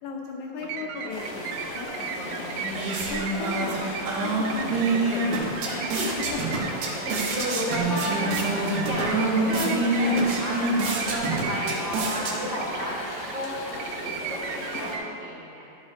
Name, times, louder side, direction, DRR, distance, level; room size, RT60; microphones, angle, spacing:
voice 1, 0.0-5.7 6.2-6.8 8.6-8.7, left 5 dB, 75° left, -1 dB, 1.8 m, -37 dB
sound 1, 0.6-15.1, right 6 dB, 90° right, 2.4 m, -37 dB
sound 2, 1.1-15.0, left 1 dB, 55° left, 2.2 m, -36 dB
sound 3, 2.3-12.8, right 2 dB, 70° right, 2.5 m, -27 dB
voice 2, 5.6-6.2 7.0-8.5 8.9-10.6 10.9-13.0 13.3-15.7, equal, 40° right, -8 dB, 2.1 m, -32 dB
12.0 x 6.4 x 3.7 m, 2.6 s
omnidirectional pair, 4.1 m